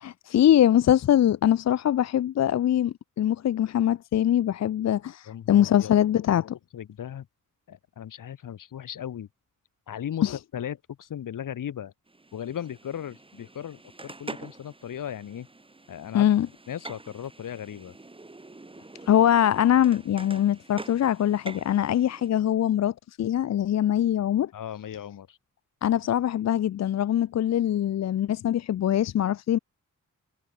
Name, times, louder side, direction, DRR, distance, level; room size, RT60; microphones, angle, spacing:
voice 1, 0.0-6.6 10.2-10.4 16.1-16.5 19.1-24.5 25.8-29.6, left 11 dB, 55° left, 0.5 m, -23 dB
voice 2, 5.3-5.9 6.4-6.5 6.7-7.3 7.7-9.3 9.9-11.9 12.3-15.5 15.9-16.3 16.7-17.9 24.5-25.4, left 9 dB, 80° left, 1.7 m, -37 dB
sound 1, 12.1-22.3, right 2 dB, 15° right, 3.2 m, -45 dB
wide cardioid pair, 145°, 32 cm